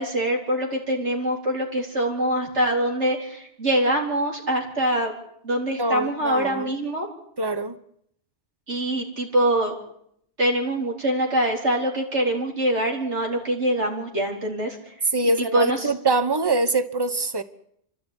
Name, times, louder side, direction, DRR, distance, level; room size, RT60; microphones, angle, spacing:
voice 1, 0.0-5.1 5.4-7.1 8.7-9.7 10.4-14.9 15.4-15.9, right 1 dB, 80° right, 1 dB, 4.5 m, -24 dB
voice 2, 5.8-6.7 7.4-7.8 15.1-17.4, right 2 dB, 20° right, 11 dB, 1.1 m, -24 dB
29.5 x 12.5 x 10.0 m, 0.72 s
omnidirectional pair, 1.2 m